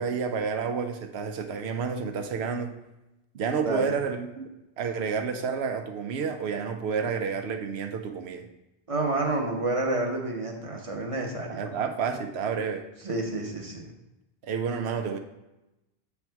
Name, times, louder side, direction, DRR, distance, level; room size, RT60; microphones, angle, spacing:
voice 1, 0.0-2.7 3.3-4.5 4.8-8.5 11.5-12.9 14.4-15.2, right 6 dB, 80° right, 6 dB, 0.9 m, -30 dB
voice 2, 3.6-4.0 8.9-11.7 13.0-13.9, right 2 dB, 35° right, 1 dB, 0.9 m, -29 dB
7.1 x 3.5 x 4.5 m, 0.95 s
omnidirectional pair, 1.1 m